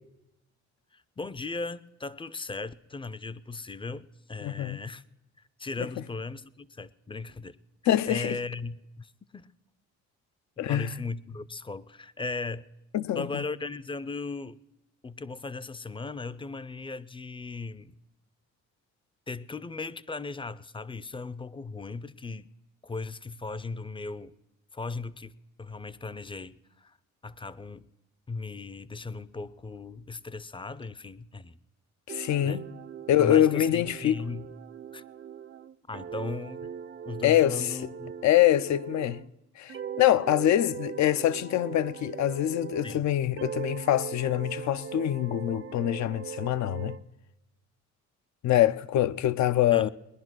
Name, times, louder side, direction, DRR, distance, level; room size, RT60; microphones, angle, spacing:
voice 1, 0.9-5.0 5.6-7.6 8.1-9.5 10.7-12.7 13.1-14.6 15.0-17.9 19.3-22.5 22.8-24.3 24.7-25.3 25.6-27.0 27.2-27.9 28.3-31.6 32.4-32.6 33.2-34.5 34.9-35.0 35.9-36.7 37.0-38.1 42.8-43.0 49.7-49.9, left 3 dB, 15° left, 0.5 m, -37 dB
voice 2, 4.4-4.8 7.9-8.4 10.6-10.9 12.9-13.4 32.1-32.6 33.1-34.2 37.2-37.7 38.2-39.2 39.6-47.0 48.4-49.9, left 12 dB, 65° left, 0.6 m, -24 dB
sound 1, 32.1-39.3 39.7-43.1 43.4-47.0, right 7 dB, 40° right, 0.6 m, -40 dB
20.0 x 10.5 x 6.2 m
cardioid pair, 90°, 30 cm